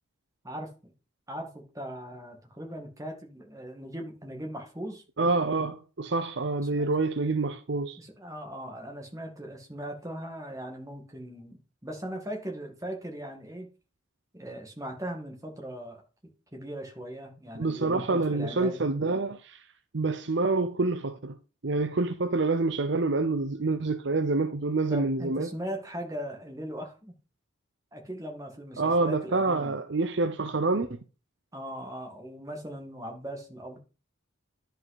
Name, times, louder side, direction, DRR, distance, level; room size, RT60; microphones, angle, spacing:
voice 1, 0.4-0.9 1.3-5.0 6.6-6.9 8.0-13.7 14.3-16.0 16.5-18.9 24.9-27.2 27.9-29.8 31.5-33.8, right 1 dB, 15° right, 1.9 m, -39 dB
voice 2, 5.2-8.0 17.5-19.6 19.9-21.4 21.6-25.5 28.8-31.0, right 3 dB, 55° right, 0.7 m, -27 dB
11.0 x 5.4 x 4.0 m
head